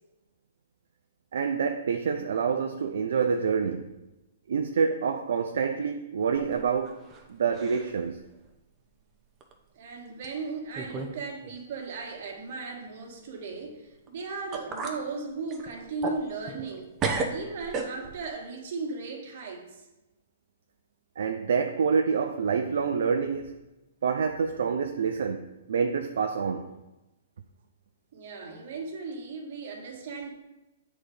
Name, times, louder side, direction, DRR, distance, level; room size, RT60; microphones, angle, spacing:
voice 1, 1.3-3.8 4.5-7.0 7.3-8.2 21.2-23.6 24.0-26.7, right 6 dB, 70° right, 0.5 m, -27 dB
sound 1, 6.4-7.3 7.5-8.0 8.4-8.5 9.4-9.5 10.2-10.3 10.8-11.2 11.4-11.5 14.1-14.2 14.5-15.0 15.5-16.7 17.0-18.3, right 4 dB, 25° right, 0.9 m, -33 dB
voice 2, 9.7-16.9 17.3-19.9 28.1-30.3, right 4 dB, 55° right, 1.6 m, -36 dB
7.7 x 4.1 x 4.9 m
hypercardioid pair, 125°, 0 cm